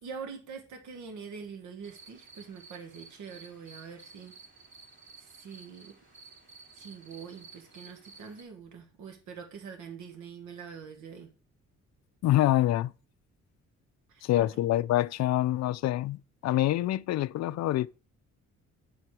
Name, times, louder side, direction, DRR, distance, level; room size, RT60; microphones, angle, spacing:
voice 1, 0.0-4.3 5.2-5.9 6.7-11.3 14.1-14.5, right 6 dB, 75° right, 1.5 m, -44 dB
sound 1, 1.8-8.4, right 4 dB, 40° right, 3.0 m, -53 dB
voice 2, 12.2-12.9 14.2-17.9, left 14 dB, 60° left, 0.4 m, -26 dB
9.5 x 4.6 x 4.8 m
cardioid pair, 90°, 30 cm